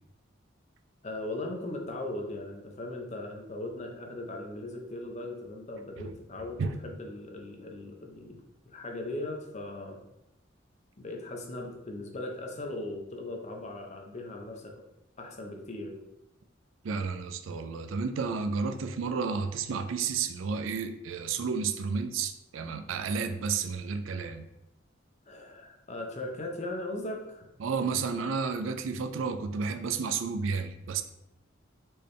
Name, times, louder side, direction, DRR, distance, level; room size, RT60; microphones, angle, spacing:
voice 1, 1.0-8.4 8.7-10.0 11.0-14.7 15.2-16.0 25.3-27.5, left 2 dB, 35° left, 2 dB, 0.7 m, -38 dB
voice 2, 16.8-24.5 27.6-31.0, right 5 dB, 85° right, 8 dB, 0.4 m, -31 dB
4.4 x 3.4 x 3.2 m, 0.88 s
head